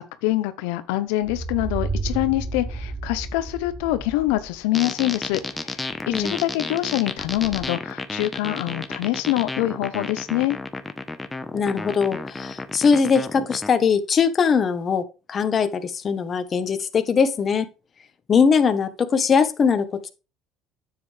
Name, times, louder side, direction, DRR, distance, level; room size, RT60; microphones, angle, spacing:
voice 1, 0.0-10.6, left 16 dB, 85° left, 0.7 m, -25 dB
sound 1, 1.2-4.5 4.9-5.8 6.1-6.2 7.2-7.6, right 3 dB, 30° right, 4.8 m, -32 dB
sound 2, 4.7-13.7, left 2 dB, 15° left, 1.1 m, -32 dB
voice 2, 11.5-15.0 15.3-17.7 18.3-20.1, left 6 dB, 35° left, 1.2 m, -21 dB
9.5 x 7.7 x 3.4 m
supercardioid pair, 100°, 0 cm